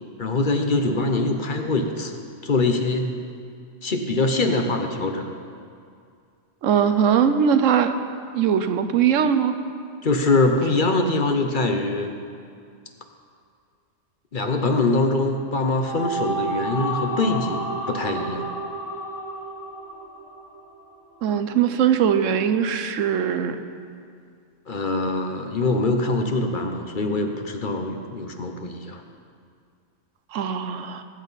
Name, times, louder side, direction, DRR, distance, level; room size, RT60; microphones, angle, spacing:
voice 1, 0.2-3.1 3.8-5.3 10.0-12.1 14.3-18.5 24.7-29.0, left 2 dB, 45° left, 4 dB, 0.9 m, -23 dB
voice 2, 6.6-7.9 8.3-9.5 21.2-23.6 30.3-31.0, right 8 dB, 85° right, 9 dB, 1.1 m, -20 dB
sound 1, 15.6-20.9, right 2 dB, 75° left, 1.9 m, -30 dB
19.0 x 9.1 x 4.1 m, 2.3 s
omnidirectional pair, 1.3 m